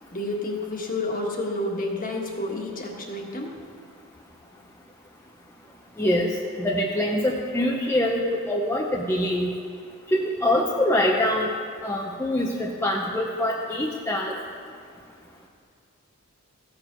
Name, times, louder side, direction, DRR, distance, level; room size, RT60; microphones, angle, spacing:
voice 1, 0.1-3.6, left 2 dB, 40° left, 0 dB, 1.6 m, -30 dB
voice 2, 6.0-9.5 10.1-11.5 11.8-14.4, left 1 dB, 10° left, -2 dB, 0.7 m, -24 dB
15.5 x 7.0 x 5.9 m, 2.2 s
head